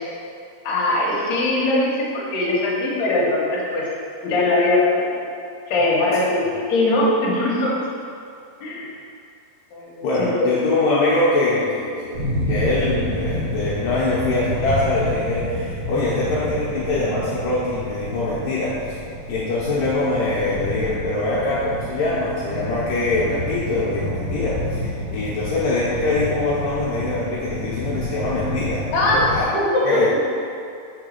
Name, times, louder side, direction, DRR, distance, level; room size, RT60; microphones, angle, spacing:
voice 1, 0.6-3.9 4.2-5.1 5.7-7.8 8.6-8.9 9.7-10.1 10.4-10.5 28.9-30.0, left 2 dB, 55° left, -5 dB, 2.3 m, -21 dB
voice 2, 10.0-19.0 19.3-29.5 29.8-30.1, left 2 dB, 75° left, -8 dB, 2.4 m, -23 dB
sound 1, 12.1-29.4, equal, 55° right, 1.8 m, -29 dB
5.7 x 4.8 x 6.6 m, 2.5 s
omnidirectional pair, 4.4 m